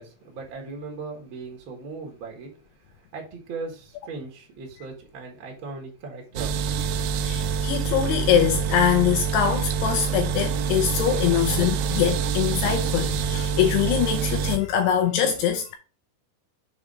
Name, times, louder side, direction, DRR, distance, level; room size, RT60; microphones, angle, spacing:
voice 1, 0.0-2.5 2.8-6.6, right 4 dB, 60° right, 1.3 m, -38 dB
sound 1, 6.4-14.6, right 6 dB, 80° right, 2.5 m, -26 dB
voice 2, 7.2-15.8, left 9 dB, 80° left, 2.5 m, -23 dB
7.1 x 3.2 x 5.1 m
omnidirectional pair, 5.3 m